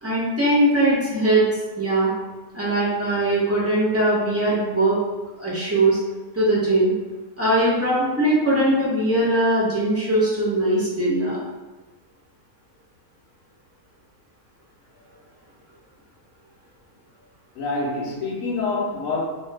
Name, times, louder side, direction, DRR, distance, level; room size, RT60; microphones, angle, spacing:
voice 1, 0.0-2.1 2.5-5.0 5.4-6.0 6.3-6.9 7.4-11.4, right 1 dB, 20° right, -8 dB, 0.4 m, -20 dB
voice 2, 17.5-19.2, left 3 dB, 70° left, -3 dB, 1.0 m, -26 dB
3.0 x 2.2 x 3.2 m, 1.2 s
omnidirectional pair, 1.6 m